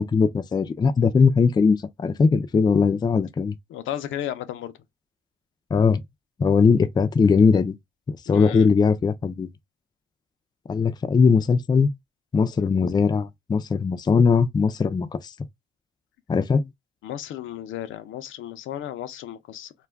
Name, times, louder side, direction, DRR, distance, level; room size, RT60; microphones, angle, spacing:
voice 1, 0.0-3.5 5.7-6.0 6.4-7.7 8.1-9.5 10.7-11.9 12.3-15.1 16.3-16.6, left 5 dB, 20° left, 0.3 m, -20 dB
voice 2, 3.7-4.7 8.3-8.7 17.0-19.7, left 11 dB, 80° left, 0.5 m, -34 dB
2.3 x 2.2 x 3.3 m
cardioid pair, 90°, 20 cm